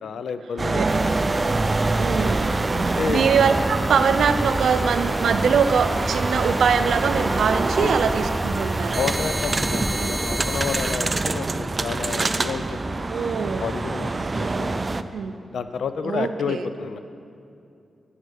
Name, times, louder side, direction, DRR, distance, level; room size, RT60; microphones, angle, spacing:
voice 1, 0.0-1.0 2.7-3.2 7.8-8.0 9.0-14.1 14.4-15.0 15.5-17.0, left 6 dB, 85° left, 11 dB, 0.6 m, -30 dB
sound 1, 0.6-15.0, right 3 dB, 35° right, 0.4 m, -25 dB
sound 2, 0.9-11.0, equal, 5° right, 0.8 m, -31 dB
voice 2, 2.0-2.5 2.8-9.1 10.0-10.4 13.1-13.6 15.1-15.3 16.0-16.7, right 6 dB, 85° right, 10 dB, 0.6 m, -23 dB
11.0 x 9.0 x 6.5 m, 2.6 s
cardioid pair, 70°, 0 cm